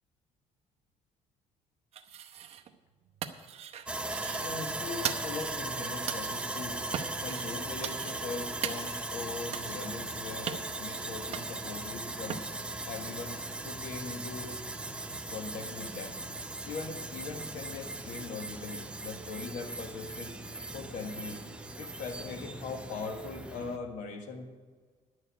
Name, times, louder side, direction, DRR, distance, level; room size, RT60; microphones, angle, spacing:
sound 1, 1.9-2.7 3.0-4.6 5.0-5.7 6.1-6.6 6.9-7.5 7.8-8.4 8.6-9.2 9.5-9.9 10.5-11.7 12.3-12.5, right 9 dB, 55° right, 0.9 m, -39 dB
Sawing, 3.9-23.8, right 2 dB, 10° right, 0.8 m, -38 dB
voice 1, 4.4-6.8 7.2-12.4 12.9-14.5 15.3-16.2 16.6-20.3 20.7-21.4 21.8-24.5, left 4 dB, 85° left, 5 dB, 1.7 m, -40 dB
10.5 x 6.7 x 8.3 m, 1.5 s
cardioid pair, 115°, 13 cm